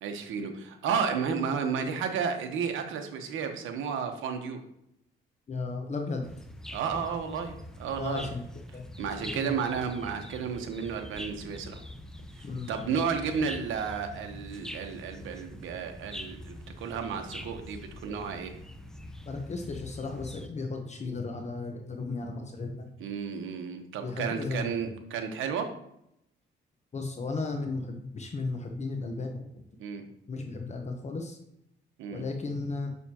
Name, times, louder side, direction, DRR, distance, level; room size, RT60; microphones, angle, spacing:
voice 1, 0.0-4.6 6.7-8.3 9.0-11.8 12.4-18.5 23.0-25.7 29.8-30.0 32.0-32.2, right 6 dB, 80° right, 5 dB, 1.0 m, -32 dB
voice 2, 5.5-6.3 8.0-8.4 8.7-8.8 9.2-9.5 12.4-12.7 19.3-23.0 24.0-24.7 26.9-29.5 30.3-31.4 32.1-33.0, left 3 dB, 35° left, 3 dB, 1.0 m, -35 dB
sound 1, 6.2-20.5, left 1 dB, 5° left, 0.7 m, -44 dB
6.8 x 6.3 x 2.9 m, 0.78 s
cardioid pair, 90°, 20 cm